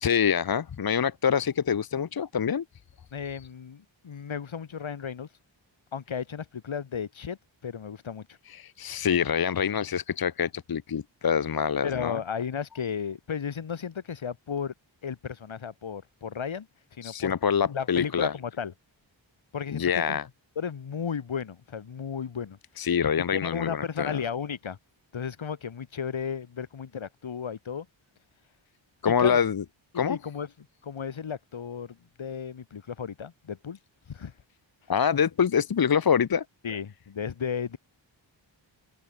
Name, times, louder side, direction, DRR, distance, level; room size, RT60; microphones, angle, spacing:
voice 1, 0.0-2.6 8.5-12.2 17.0-18.3 19.7-20.2 22.8-24.2 29.0-29.6 29.9-30.2 34.9-36.4, left 7 dB, 50° left, 0.9 m, -25 dB
voice 2, 3.1-5.3 5.9-8.4 11.8-14.7 15.0-16.7 16.9-17.3 17.7-18.7 19.5-20.2 20.6-22.6 23.2-24.8 25.1-27.9 29.0-29.4 29.9-33.8 34.1-34.3 36.6-37.8, left 7 dB, 80° left, 3.1 m, -34 dB
open air
cardioid pair, 65°, 47 cm